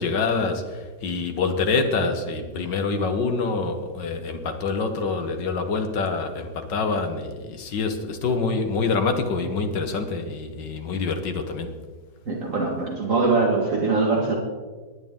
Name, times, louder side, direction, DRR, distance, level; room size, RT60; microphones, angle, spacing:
voice 1, 0.0-11.7, left 4 dB, 85° left, 6 dB, 1.9 m, -26 dB
voice 2, 12.3-14.4, right 3 dB, 50° right, -1 dB, 2.1 m, -22 dB
19.0 x 9.9 x 3.7 m, 1.3 s
omnidirectional pair, 1.9 m